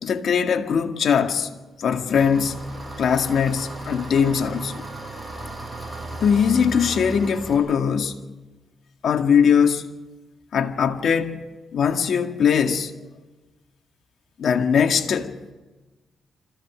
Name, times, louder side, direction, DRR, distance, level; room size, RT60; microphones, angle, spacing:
voice 1, 0.0-1.5 1.8-4.8 6.2-8.2 9.0-9.9 10.5-12.9 14.4-15.3, left 7 dB, 70° left, 2.0 m, -21 dB
Engine, 2.1-7.6, right 2 dB, 15° right, 7.6 m, -36 dB
26.5 x 16.0 x 6.3 m
cardioid pair, 75°, 0 cm